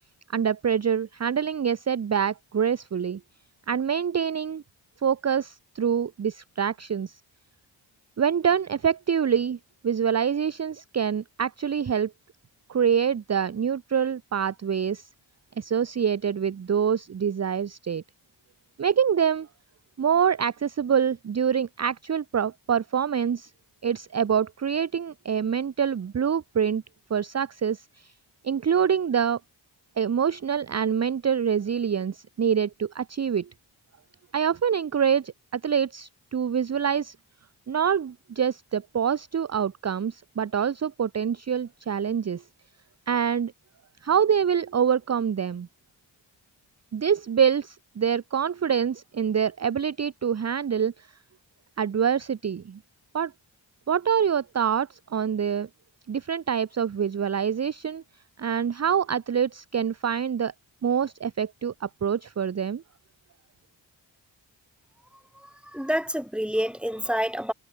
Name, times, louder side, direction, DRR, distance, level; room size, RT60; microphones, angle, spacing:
voice 1, 0.3-3.2 3.7-4.6 5.0-7.1 8.2-9.6 9.8-12.1 12.7-15.1 15.6-18.0 18.8-19.5 20.0-23.5 23.8-26.8 27.1-28.1 28.4-29.4 30.0-33.5 34.3-37.1 37.7-42.4 43.1-43.5 44.0-45.7 46.9-50.9 51.8-52.8 53.1-53.3 53.9-55.7 56.1-58.0 58.4-60.5 60.8-62.8, right 7 dB, 35° right, 0.7 m, -25 dB
voice 2, 65.3-67.5, equal, ahead, 2.7 m, -28 dB
supercardioid pair, 40°, 47 cm